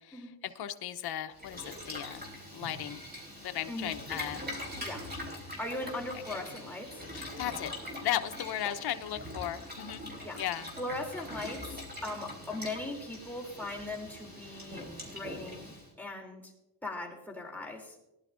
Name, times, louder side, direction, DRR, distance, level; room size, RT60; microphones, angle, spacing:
voice 1, 0.0-3.0 3.4-4.4 6.1-6.2 7.1-7.7 8.0-10.0 10.3-10.7, left 12 dB, 55° left, 8 dB, 0.9 m, -36 dB
Boiling, 1.3-15.9, left 1 dB, 20° right, 3.6 m, -43 dB
voice 2, 5.6-7.1 8.6-8.7 10.2-10.4 10.8-15.7 16.0-16.5 16.8-18.0, left 2 dB, 5° left, -2 dB, 3.0 m, -39 dB
19.5 x 11.0 x 2.5 m, 0.91 s
cardioid pair, 120°, 47 cm